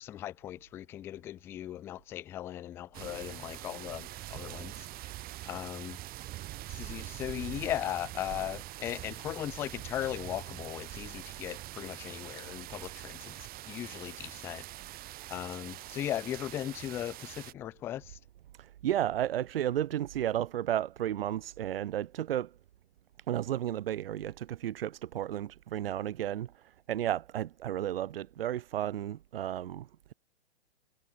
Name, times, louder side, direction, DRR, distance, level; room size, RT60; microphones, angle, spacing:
voice 1, 0.0-5.1 5.5-6.0 6.7-13.4 13.7-14.6 15.3-18.2, left 12 dB, 10° left, 0.3 m, -38 dB
sound 1, 2.9-17.5, right 16 dB, 25° right, 5.2 m, -44 dB
voice 2, 18.6-22.5 23.3-29.9, right 11 dB, 60° right, 2.1 m, -33 dB
hypercardioid pair, 130°, 33 cm